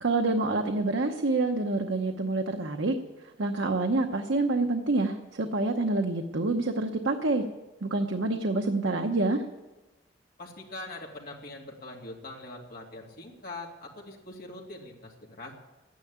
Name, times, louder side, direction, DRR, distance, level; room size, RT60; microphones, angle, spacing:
voice 1, 0.0-3.0 3.4-7.4 7.8-9.4, right 2 dB, 80° right, 4 dB, 0.9 m, -27 dB
voice 2, 10.4-15.5, left 2 dB, 55° left, -1 dB, 2.7 m, -43 dB
12.5 x 10.5 x 8.7 m, 1.1 s
head